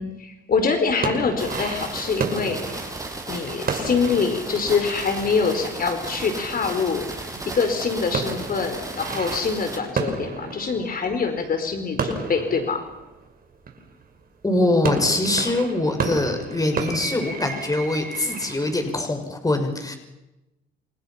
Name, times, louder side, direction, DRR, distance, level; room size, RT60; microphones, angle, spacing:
voice 1, 0.0-2.9 3.3-7.3 7.5-12.8, left 5 dB, 45° left, 6 dB, 4.7 m, -25 dB
sound 1, 0.9-7.1 7.4-14.0 14.6-19.1, right 4 dB, 45° right, 5.5 m, -32 dB
sound 2, 1.4-9.8, right 2 dB, 15° right, 7.1 m, -35 dB
voice 2, 14.4-19.9, left 2 dB, 15° left, 5 dB, 6.1 m, -23 dB
29.0 x 28.5 x 5.9 m, 0.97 s
cardioid pair, 90°, 21 cm